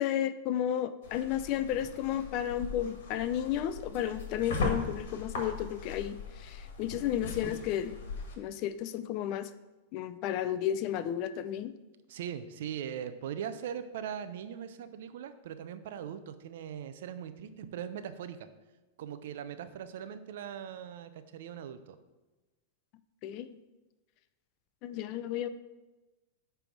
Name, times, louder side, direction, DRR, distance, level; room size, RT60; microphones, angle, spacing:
voice 1, 0.0-8.0 8.4-9.5 9.9-11.7 23.2-23.6 24.8-25.5, left 10 dB, 45° left, 13 dB, 0.5 m, -33 dB
sound 1, 1.0-8.4, left 3 dB, 70° left, 1.7 m, -39 dB
voice 2, 12.1-18.5 19.0-22.0, right 9 dB, 70° right, 11 dB, 0.6 m, -40 dB
9.1 x 3.4 x 6.0 m, 1.1 s
hypercardioid pair, 135°, 0 cm